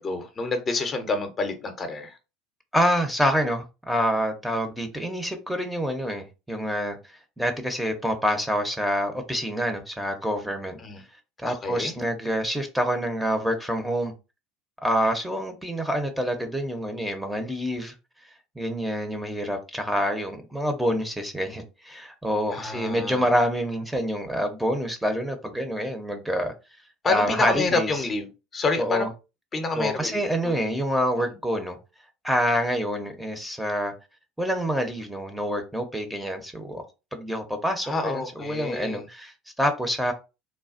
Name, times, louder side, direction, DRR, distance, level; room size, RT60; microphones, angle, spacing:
voice 1, 0.0-2.2 10.8-11.0 11.4-11.9 22.5-23.3 27.0-29.1 29.5-30.5 31.3-31.4 37.8-39.0, left 3 dB, 30° left, 0.7 m, -28 dB
voice 2, 2.7-7.0 7.4-10.8 11.4-14.1 14.8-17.9 18.6-26.5 27.1-27.9 28.8-29.1 29.8-31.8 32.2-33.9 34.4-36.8 37.1-40.1, equal, 5° right, 0.7 m, -27 dB
3.2 x 2.2 x 2.5 m
hypercardioid pair, 75°, 0 cm